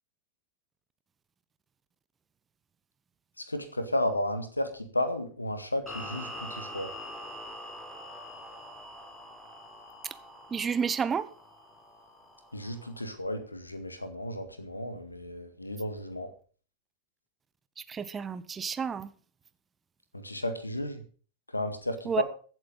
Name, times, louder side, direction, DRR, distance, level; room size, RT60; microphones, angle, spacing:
voice 1, 3.5-6.9 12.5-16.3 20.1-21.0 21.5-22.2, left 1 dB, 85° left, 1.9 m, -33 dB
sound 1, 5.9-13.0, equal, 10° left, 4.2 m, -44 dB
voice 2, 10.5-11.3 17.8-19.1 22.0-22.2, right 6 dB, 20° right, 0.9 m, -31 dB
15.5 x 8.2 x 5.5 m
figure-of-eight pair, 90°, 0 cm